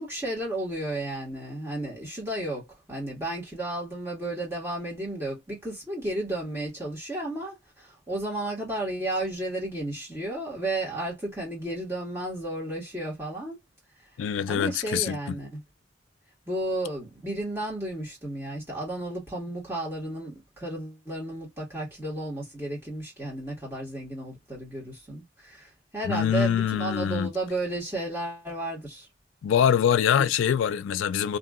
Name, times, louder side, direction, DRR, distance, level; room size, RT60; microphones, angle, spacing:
voice 1, 0.0-13.6 14.5-15.6 16.5-29.0, right 1 dB, 15° right, 1.5 m, -33 dB
voice 2, 14.2-15.4 26.0-27.3 29.4-31.4, left 8 dB, 85° left, 0.3 m, -24 dB
2.7 x 2.6 x 2.4 m
head